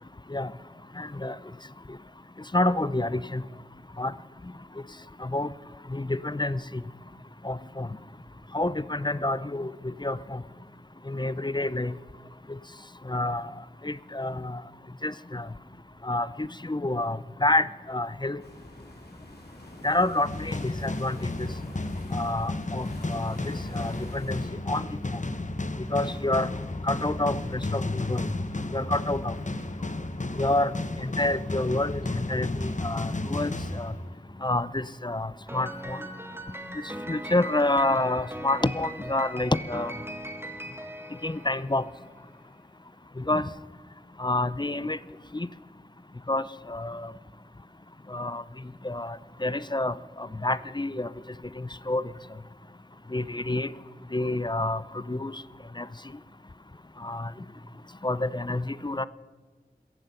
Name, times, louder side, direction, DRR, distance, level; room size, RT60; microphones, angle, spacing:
voice 1, 1.0-1.4 2.5-3.4 4.0-4.1 5.2-5.5 5.9-6.8 7.4-7.9 8.5-10.4 11.1-11.9 13.1-13.5 13.8-14.6 15.0-15.5 16.0-18.4 19.8-21.5 22.1-24.4 24.7-24.8 25.9-26.5 26.8-27.4 27.7-28.3 28.7-29.4 30.4-30.7 31.0-33.9 34.4-36.0 37.1-39.9 41.2-41.8 43.2-43.5 44.2-45.0 45.3-45.5 46.3-47.1 48.1-48.4 48.8-51.1 51.6-52.0 53.1-53.7 54.1-55.4 55.8-55.9 57.0-57.3 58.0-59.1, left 2 dB, 25° left, 17 dB, 0.5 m, -28 dB
sound 1, 18.4-24.4, left 1 dB, 75° left, 3.2 m, -46 dB
sound 2, 20.2-34.4, left 2 dB, 45° left, 0.9 m, -33 dB
Piano, 35.5-42.0, right 1 dB, 15° right, 1.7 m, -39 dB
17.0 x 14.5 x 5.6 m, 1.5 s
wide cardioid pair, 45°, 17 cm